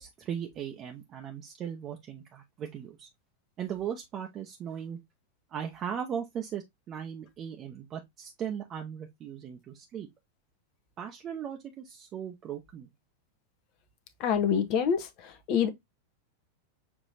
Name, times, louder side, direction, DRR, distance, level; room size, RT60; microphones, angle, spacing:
voice 1, 0.0-3.1 3.6-5.0 5.5-10.1 11.0-12.9, right 8 dB, 30° right, 0.7 m, -38 dB
voice 2, 14.2-15.7, left 7 dB, 40° left, 0.8 m, -27 dB
6.6 x 3.0 x 2.6 m
figure-of-eight pair, 90°, 0 cm